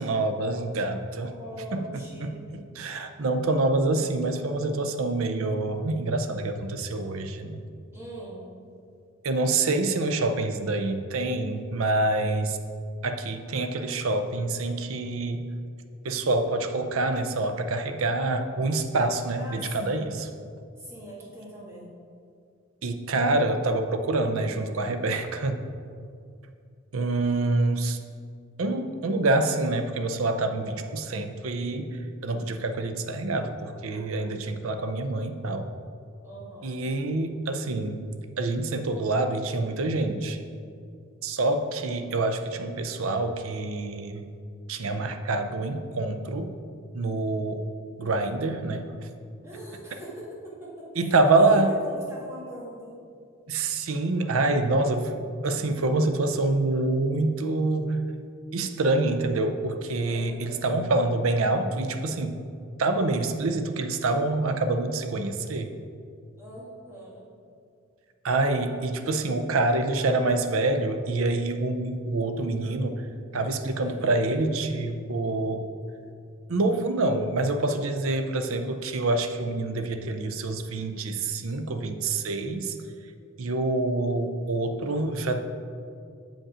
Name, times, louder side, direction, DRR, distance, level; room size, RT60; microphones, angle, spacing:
voice 1, 0.0-1.3 1.7-1.8 2.2-7.6 9.2-12.6 13.0-15.5 16.0-20.3 22.8-25.6 26.9-28.0 28.6-35.7 36.6-38.0 38.4-40.4 41.2-44.3 44.7-46.5 46.9-47.6 48.0-48.9 51.0-51.7 53.5-58.0 58.5-62.4 62.8-65.7 68.2-73.1 73.3-75.7 76.5-82.8 83.4-85.4, right 2 dB, 80° right, 8 dB, 0.6 m, -26 dB
voice 2, 1.3-2.4 7.9-8.5 19.4-20.1 20.8-21.9 36.2-36.7 49.4-53.0 60.1-60.7 66.4-67.3 73.8-74.5, equal, 10° right, -7 dB, 1.7 m, -42 dB
7.3 x 5.2 x 4.9 m, 2.3 s
head